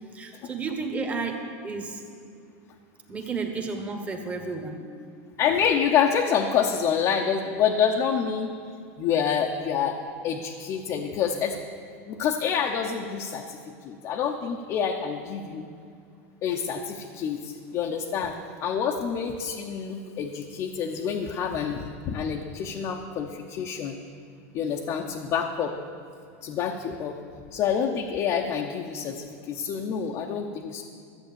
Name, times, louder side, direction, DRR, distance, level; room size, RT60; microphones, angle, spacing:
voice 1, 0.1-2.0 3.1-4.8, right 4 dB, 15° right, 3 dB, 1.3 m, -32 dB
voice 2, 5.4-8.5 9.0-11.6 12.1-15.7 16.4-24.0 24.5-25.7 26.4-27.1 27.5-30.8, left 7 dB, 40° left, 1 dB, 0.8 m, -27 dB
13.5 x 8.0 x 7.0 m, 2.3 s
supercardioid pair, 140°, 8 cm